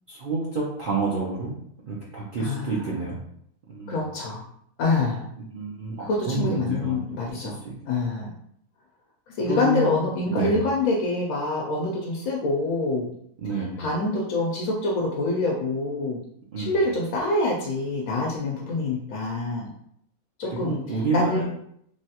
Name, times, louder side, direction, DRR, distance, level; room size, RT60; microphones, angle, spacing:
voice 1, 0.1-1.5 1.9-3.2 3.7-4.0 5.5-6.9 7.4-7.7 9.5-10.0 10.3-10.5 13.4-13.8 16.5-16.8 20.6-21.4, right 3 dB, 60° right, -5 dB, 0.5 m, -29 dB
voice 2, 2.4-2.9 3.9-4.4 4.8-5.2 6.0-7.6 7.9-8.3 9.4-13.1 13.8-16.2 16.6-19.7 20.4-20.8 21.1-21.4, left 2 dB, 75° left, -2 dB, 1.0 m, -26 dB
3.2 x 2.3 x 2.8 m, 0.69 s
omnidirectional pair, 1.5 m